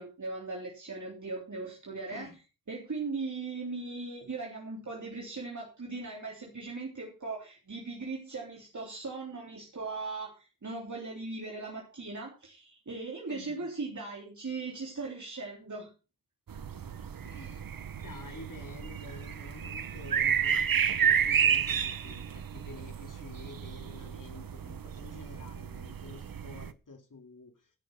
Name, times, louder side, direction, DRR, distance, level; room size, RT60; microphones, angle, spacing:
voice 1, 0.0-2.3 2.7-15.9, right 3 dB, 60° right, -2 dB, 3.6 m, -39 dB
voice 2, 2.1-2.4 13.3-13.7 17.2-17.7 18.0-27.7, left 3 dB, 70° left, 5 dB, 2.5 m, -49 dB
sound 1, 16.5-26.7, right 8 dB, 90° right, 0.9 m, -31 dB
16.0 x 6.6 x 6.1 m, 0.32 s
wide cardioid pair, 90°, 34 cm